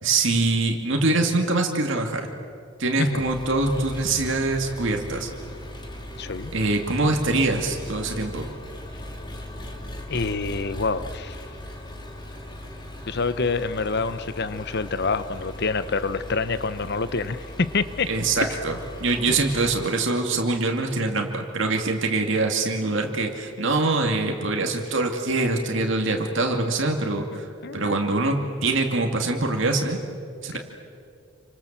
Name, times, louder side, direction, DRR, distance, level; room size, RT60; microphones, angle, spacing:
voice 1, 0.0-2.3 2.8-5.3 6.5-8.5 18.1-30.0 30.4-30.6, right 2 dB, 60° right, 2 dB, 2.4 m, -24 dB
Engine, 3.2-19.9, left 1 dB, 20° left, 3.0 m, -38 dB
voice 2, 6.2-6.5 10.1-11.4 13.1-18.1 19.3-19.4 27.6-28.1 30.5-30.6, left 4 dB, 50° left, 13 dB, 1.0 m, -27 dB
29.5 x 25.5 x 7.4 m, 2.4 s
head